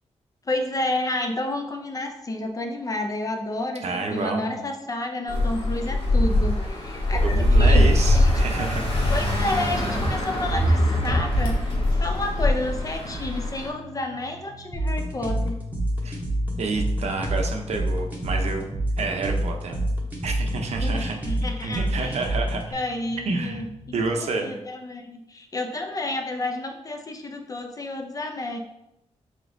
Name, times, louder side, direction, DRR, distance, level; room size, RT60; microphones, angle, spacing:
voice 1, 0.5-3.8 4.1-8.7 9.1-15.6 20.8-22.3 22.7-23.7 24.1-28.6, left 2 dB, 30° left, 4 dB, 0.5 m, -30 dB
voice 2, 3.8-4.6 7.2-8.8 13.0-13.2 16.0-16.2 16.6-18.6 19.0-19.8 20.2-21.2 21.6-22.8 23.3-23.6 23.9-24.5, right 3 dB, 65° right, 2 dB, 0.7 m, -29 dB
sound 1, 5.3-13.7, left 1 dB, 50° left, 1.1 m, -22 dB
sound 2, 12.2-24.2, left 1 dB, 75° left, 1.3 m, -42 dB
sound 3, 14.7-22.7, right 1 dB, 15° right, 0.8 m, -27 dB
5.1 x 3.4 x 2.6 m, 0.84 s
wide cardioid pair, 135°, 12 cm